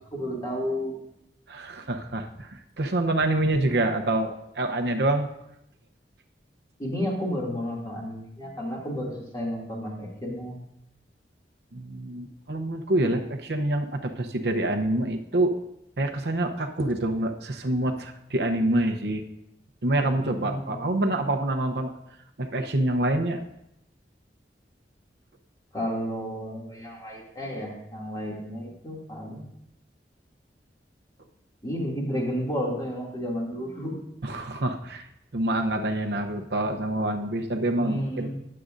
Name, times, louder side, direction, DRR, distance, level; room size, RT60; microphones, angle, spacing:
voice 1, 0.1-1.0 6.8-10.6 20.2-20.9 25.7-29.4 31.6-33.9 37.8-38.3, equal, 20° left, -3 dB, 2.6 m, -32 dB
voice 2, 1.5-5.3 11.7-15.5 16.0-19.2 19.8-21.9 22.4-23.4 34.2-35.1 35.3-38.3, right 1 dB, 70° right, 4 dB, 0.8 m, -26 dB
21.0 x 7.7 x 2.6 m, 0.81 s
head